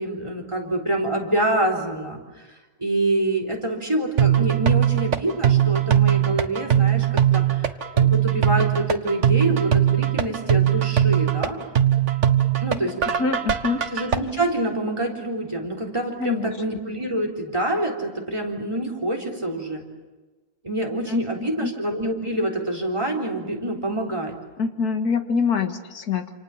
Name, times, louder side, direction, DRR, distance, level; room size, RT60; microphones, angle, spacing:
voice 1, 0.0-2.2 2.8-11.6 12.6-12.9 13.9-19.8 20.6-24.3, right 1 dB, 20° right, 3 dB, 3.8 m, -26 dB
sound 1, 4.2-14.2, right 10 dB, 50° right, 1.5 m, -20 dB
voice 2, 13.2-13.8 16.2-16.6 21.1-21.2 21.6-21.7 24.6-26.3, left 5 dB, 80° left, 7 dB, 2.2 m, -25 dB
28.5 x 27.5 x 7.4 m, 1.2 s
omnidirectional pair, 1.6 m